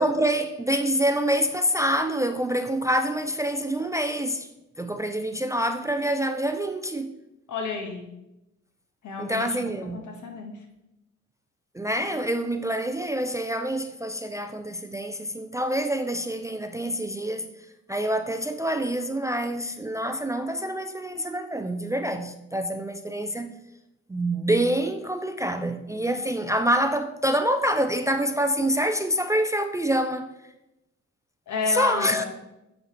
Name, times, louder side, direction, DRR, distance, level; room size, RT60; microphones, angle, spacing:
voice 1, 0.0-4.5 4.8-7.1 9.2-10.0 11.7-17.5 17.9-23.6 24.1-30.3 31.7-32.2, right 1 dB, 10° right, 0.3 m, -26 dB
voice 2, 7.5-8.0 9.0-9.5 9.9-10.6 31.5-32.3, left 4 dB, 75° left, 1.4 m, -31 dB
8.7 x 4.0 x 3.2 m
cardioid pair, 90°, 30 cm